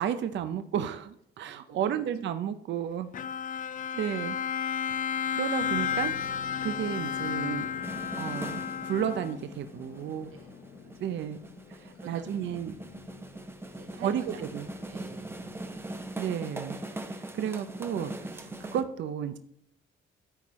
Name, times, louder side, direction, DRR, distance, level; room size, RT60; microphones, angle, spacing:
voice 1, 0.0-3.1 3.9-4.4 4.9-6.1 6.4-7.7 8.2-10.3 11.0-11.4 11.7-12.7 14.0-14.7 16.2-19.4, right 9 dB, 65° right, 10 dB, 0.6 m, -33 dB
voice 2, 1.4-2.1 3.1-3.3 3.7-3.8 10.3-10.5 10.8-11.6 11.9-12.7 13.7-14.5 14.9-16.1, right 7 dB, 90° right, 5 dB, 1.3 m, -50 dB
Bowed string instrument, 3.1-9.6, left 8 dB, 40° left, 0.4 m, -32 dB
sound 1, 5.6-18.8, left 5 dB, 60° left, 1.1 m, -49 dB
sound 2, 7.8-18.8, right 2 dB, 10° right, 0.7 m, -41 dB
13.5 x 4.5 x 3.1 m, 0.71 s
cardioid pair, 90°, 20 cm